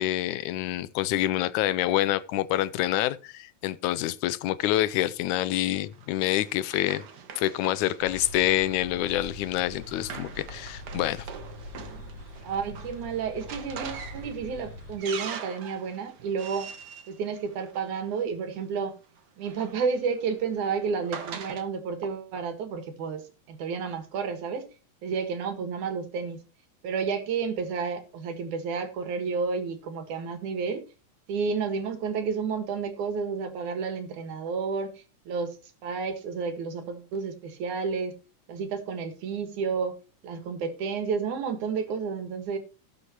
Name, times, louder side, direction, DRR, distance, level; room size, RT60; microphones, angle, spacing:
voice 1, 0.0-7.0 7.4-11.3, left 14 dB, 80° left, 2.1 m, -27 dB
Run, 5.5-18.2 19.2-21.6, right 6 dB, 55° right, 1.1 m, -43 dB
sound 1, 8.0-15.0, left 1 dB, 30° left, 5.0 m, -43 dB
voice 2, 12.4-16.7 17.1-18.9 19.4-23.2 23.5-24.6 25.0-26.4 26.8-30.8 31.3-34.9 35.3-35.6 35.8-38.1 38.5-40.0 40.2-42.6, right 5 dB, 75° right, 3.1 m, -31 dB
18.5 x 6.5 x 3.0 m
omnidirectional pair, 3.5 m